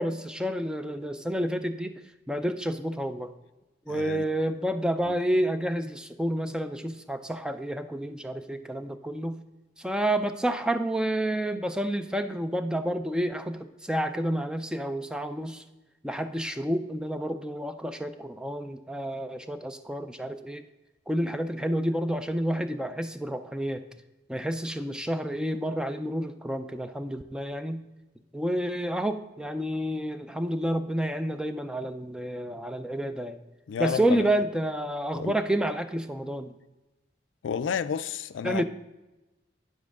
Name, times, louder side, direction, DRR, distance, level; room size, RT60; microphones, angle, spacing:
voice 1, 0.0-2.0 2.3-3.3 3.9-9.4 9.8-15.6 16.0-20.6 21.1-23.8 24.3-27.8 28.3-33.4 33.8-36.5 38.4-38.6, right 1 dB, 5° right, 0.4 m, -29 dB
voice 2, 3.9-4.3 5.1-5.2 33.7-34.3 35.1-35.3 37.4-38.6, left 7 dB, 80° left, 0.4 m, -31 dB
9.2 x 7.5 x 3.6 m
head